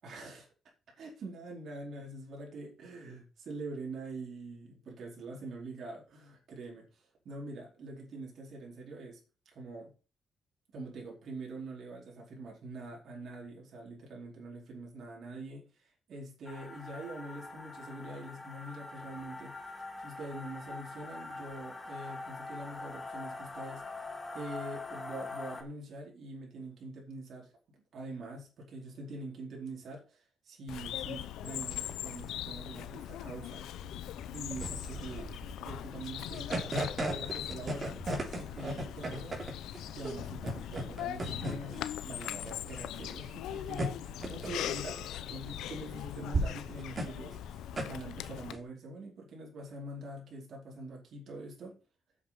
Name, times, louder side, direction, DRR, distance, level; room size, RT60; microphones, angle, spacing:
voice 1, 0.0-0.5 1.0-9.2 9.5-9.9 10.7-19.5 20.0-24.0 24.3-33.7 34.3-35.4 35.6-38.0 38.4-39.6 39.9-47.4 47.8-51.8, right 2 dB, 60° right, 4.6 m, -44 dB
sound 1, 16.4-25.6, left 3 dB, 25° left, 2.2 m, -43 dB
Bird vocalization bird call bird song, 30.7-48.5, left 11 dB, 85° left, 0.7 m, -41 dB
sound 2, 33.8-48.6, right 1 dB, 35° right, 3.7 m, -37 dB
8.3 x 7.6 x 6.0 m
cardioid pair, 90°, 0 cm